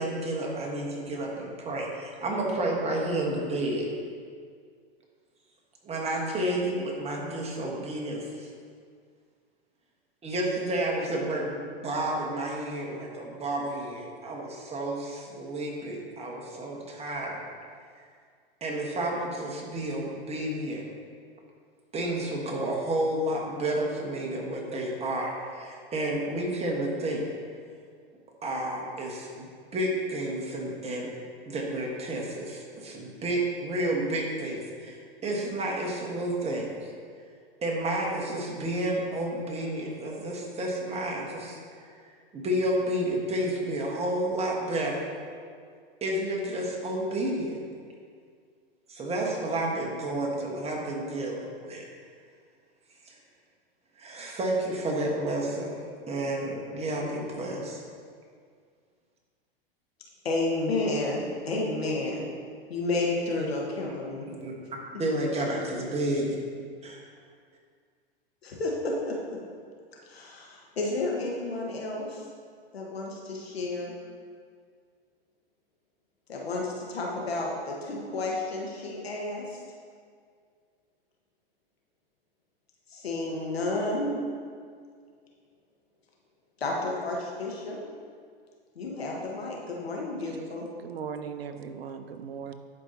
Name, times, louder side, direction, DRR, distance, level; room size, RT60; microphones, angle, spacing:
voice 1, 0.0-3.9 5.8-8.5 10.2-17.4 18.6-20.8 21.9-27.3 28.4-31.1 31.4-36.9 37.6-41.6 42.3-45.1 46.0-47.6 48.9-51.8 53.0-53.2 54.0-55.8 56.1-57.8 64.4-64.5 65.0-66.3 66.8-67.0, right 1 dB, 20° right, -2 dB, 1.4 m, -31 dB
voice 2, 60.2-62.2 62.7-64.3 68.4-69.4 70.0-72.3 72.7-73.9 76.3-79.6 82.9-84.1 86.6-87.8 88.7-90.7, left 2 dB, 90° left, -2 dB, 1.4 m, -31 dB
voice 3, 90.8-92.5, right 7 dB, 90° right, 8 dB, 0.5 m, -38 dB
11.0 x 4.5 x 2.9 m, 2.1 s
hypercardioid pair, 105°, 30 cm